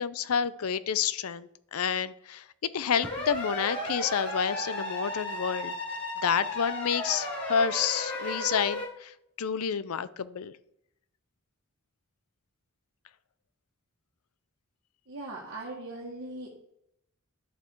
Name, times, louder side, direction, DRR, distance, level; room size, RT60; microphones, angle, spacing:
voice 1, 0.0-2.4 2.7-5.7 6.2-10.5, left 7 dB, 75° left, 16 dB, 0.5 m, -29 dB
sound 1, 3.0-8.9, left 1 dB, 55° left, 4.3 m, -34 dB
voice 2, 15.1-16.5, right 2 dB, 55° right, -4 dB, 1.7 m, -39 dB
11.0 x 6.9 x 4.6 m, 0.76 s
head